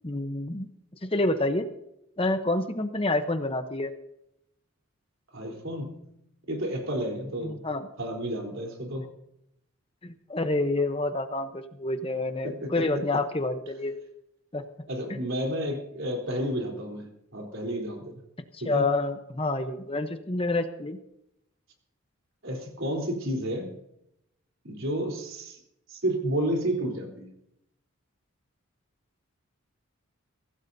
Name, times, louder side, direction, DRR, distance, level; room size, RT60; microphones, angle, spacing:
voice 1, 0.0-0.7 1.0-1.7 2.2-3.9 7.4-7.9 10.0-13.9 14.5-14.6 15.1-15.2 18.6-21.0, left 2 dB, 25° left, 8 dB, 0.9 m, -28 dB
voice 2, 5.3-6.1 6.5-7.6 8.0-9.1 12.4-12.9 14.9-18.2 18.6-18.8 22.4-23.7 24.6-25.6 25.9-27.3, right 1 dB, 65° right, 1 dB, 3.8 m, -31 dB
23.5 x 16.0 x 2.7 m, 0.80 s
head